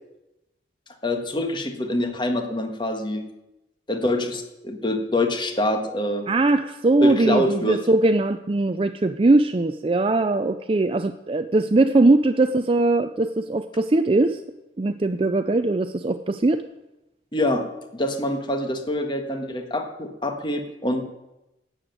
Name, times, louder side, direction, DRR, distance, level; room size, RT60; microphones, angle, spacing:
voice 1, 1.0-3.2 3.9-6.2 7.0-7.8 17.3-17.6 17.9-21.0, left 1 dB, 25° left, 5 dB, 1.5 m, -25 dB
voice 2, 6.3-14.4 14.8-16.6, right 2 dB, 30° right, 9 dB, 0.4 m, -20 dB
11.0 x 8.0 x 9.0 m, 0.94 s
head